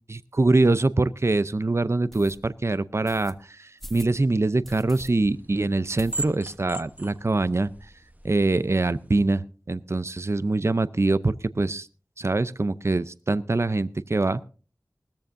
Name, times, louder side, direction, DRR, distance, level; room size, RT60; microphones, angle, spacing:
voice 1, 0.1-7.7 8.2-11.9 12.2-14.4, right 2 dB, 40° right, 15 dB, 0.5 m, -24 dB
sound 1, 0.7-0.8 1.3-1.4 2.1-2.4 3.1-3.3 3.8-4.2 4.6-5.1 5.4-5.5 6.0-6.6 7.0-7.1 7.3-7.4 7.7-8.3, equal, 5° left, 1.3 m, -43 dB
sound 2, 4.8-9.1, right 3 dB, 25° right, 1.0 m, -40 dB
19.5 x 14.0 x 2.6 m, 0.37 s
wide cardioid pair, 50°, 7 cm